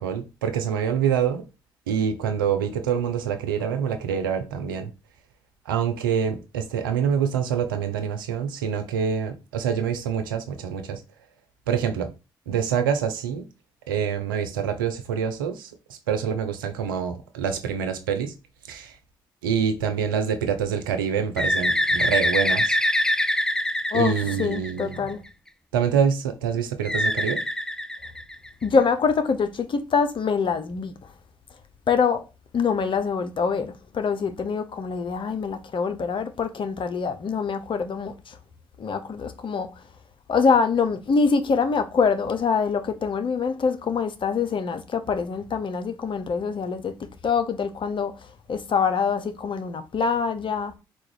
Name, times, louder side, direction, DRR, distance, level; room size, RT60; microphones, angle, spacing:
voice 1, 0.0-1.5 1.9-4.9 5.7-11.0 11.7-12.1 12.5-13.5 13.9-18.3 18.6-19.0 19.4-22.8 23.9-25.1 25.7-27.4, right 7 dB, 90° right, 0.6 m, -26 dB
Bird, 21.4-25.1 26.8-28.6, left 1 dB, 5° left, 0.4 m, -24 dB
voice 2, 23.9-25.2 28.6-30.9 31.9-32.2 32.5-38.4 38.8-39.8 40.3-46.9 47.2-50.7, left 5 dB, 50° left, 0.9 m, -25 dB
4.3 x 2.5 x 4.8 m
hypercardioid pair, 45°, 11 cm